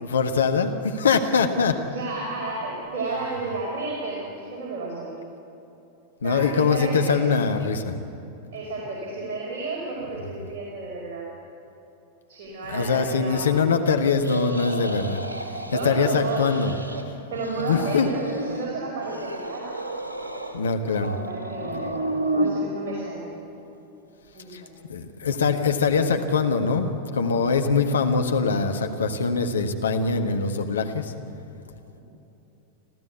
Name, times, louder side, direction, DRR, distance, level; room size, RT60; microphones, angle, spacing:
voice 1, 0.0-1.8 6.2-8.0 12.7-15.2 15.8-16.7 17.6-18.1 20.5-21.2 24.5-24.6 24.9-31.1, left 5 dB, 70° left, 5 dB, 1.5 m, -23 dB
voice 2, 1.8-5.2 6.2-7.3 8.5-11.3 12.3-13.9 15.6-16.8 17.3-19.8 20.9-23.3 24.3-24.8 31.9-32.0, right 3 dB, 50° right, -3 dB, 4.9 m, -32 dB
sound 1, 14.2-15.9 16.2-17.0 17.3-18.7 19.0-20.6 21.0-22.5, right 1 dB, 80° right, 1.8 m, -31 dB
26.5 x 15.0 x 8.2 m, 2.9 s
figure-of-eight pair, 90°, 0 cm